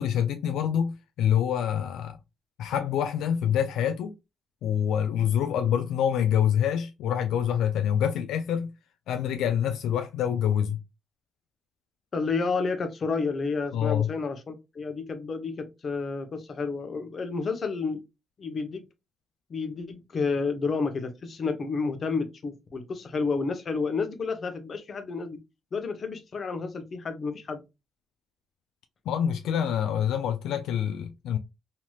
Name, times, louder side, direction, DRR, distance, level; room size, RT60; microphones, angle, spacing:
voice 1, 0.0-2.2 2.6-4.1 4.6-8.7 9.1-10.8 13.7-14.1 29.1-31.4, left 9 dB, 80° left, 0.3 m, -26 dB
voice 2, 12.1-18.0 18.4-18.8 19.5-25.4 25.7-27.6, left 4 dB, 45° left, 0.8 m, -30 dB
3.1 x 2.8 x 2.2 m
cardioid pair, 90°, 0 cm